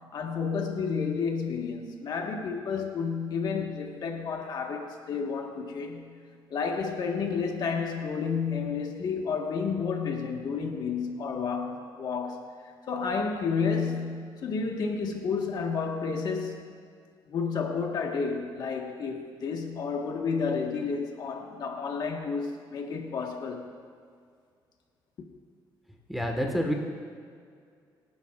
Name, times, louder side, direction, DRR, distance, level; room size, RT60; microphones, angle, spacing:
voice 1, 0.1-6.1 6.5-12.4 12.9-16.6 17.3-23.7, left 5 dB, 55° left, 2 dB, 1.4 m, -31 dB
voice 2, 26.1-26.7, equal, ahead, 2 dB, 1.5 m, -28 dB
26.0 x 11.0 x 2.5 m, 2.2 s
cardioid pair, 140°, 9 cm